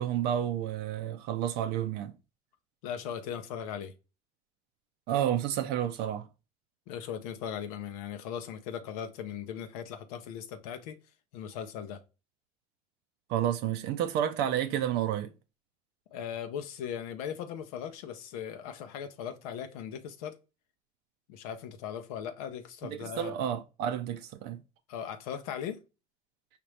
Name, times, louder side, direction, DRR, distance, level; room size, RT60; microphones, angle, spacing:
voice 1, 0.0-2.1 5.1-6.3 13.3-15.3 22.8-24.6, right 10 dB, 65° right, 0.5 m, -30 dB
voice 2, 2.8-3.9 6.9-11.0 11.3-12.0 16.1-20.4 21.3-23.3 24.9-25.8, left 8 dB, 80° left, 0.6 m, -38 dB
5.0 x 2.9 x 3.2 m
hypercardioid pair, 65°, 19 cm